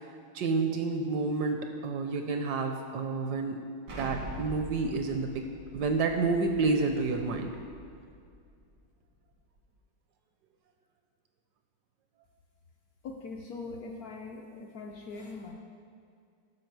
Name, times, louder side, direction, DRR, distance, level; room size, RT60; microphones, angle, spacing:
voice 1, 0.3-3.6 4.0-5.4 5.7-7.5, right 3 dB, 70° right, 5 dB, 1.0 m, -29 dB
Explosion, 3.9-8.6, right 1 dB, 90° right, 2.4 m, -44 dB
voice 2, 13.0-15.5, left 3 dB, 70° left, 1 dB, 0.9 m, -41 dB
12.5 x 5.0 x 4.6 m, 2.3 s
omnidirectional pair, 2.1 m